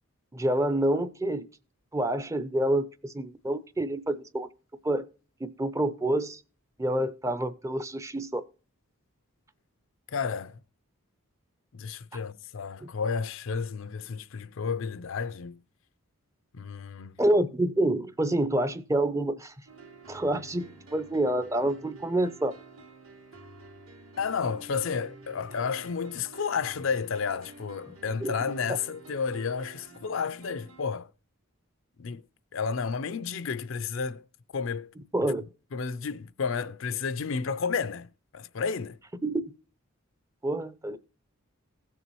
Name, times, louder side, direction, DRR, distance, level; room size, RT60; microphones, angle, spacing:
voice 1, 0.3-1.5 1.9-4.5 4.8-5.0 5.4-6.4 6.8-8.4 12.8-12.9 17.2-19.5 20.1-22.5 28.2-28.3 35.1-35.4 39.2-39.4 40.4-41.0, right 1 dB, 15° right, 0.5 m, -27 dB
voice 2, 10.1-10.6 11.7-15.6 16.5-17.2 24.2-31.1 32.0-32.2 32.5-34.2 34.5-34.9 35.7-39.0, left 5 dB, 65° left, 0.5 m, -32 dB
sound 1, 19.7-30.8, right 3 dB, 75° right, 2.4 m, -50 dB
16.5 x 6.9 x 3.0 m
head